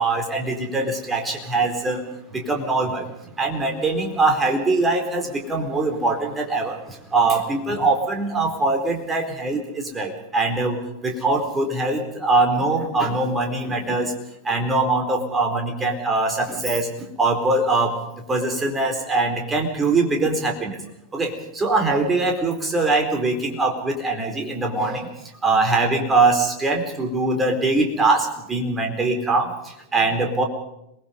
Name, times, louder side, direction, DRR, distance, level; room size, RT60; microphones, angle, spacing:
voice 1, 0.0-2.0 2.3-3.0 3.4-6.8 7.1-9.6 9.9-10.8 11.0-14.1 14.5-16.9 17.2-18.0 18.3-20.7 21.1-25.1 25.4-29.5 29.9-30.4, right 3 dB, 15° right, 3 dB, 4.4 m, -22 dB
27.0 x 20.5 x 5.4 m, 0.84 s
figure-of-eight pair, 90°, 0 cm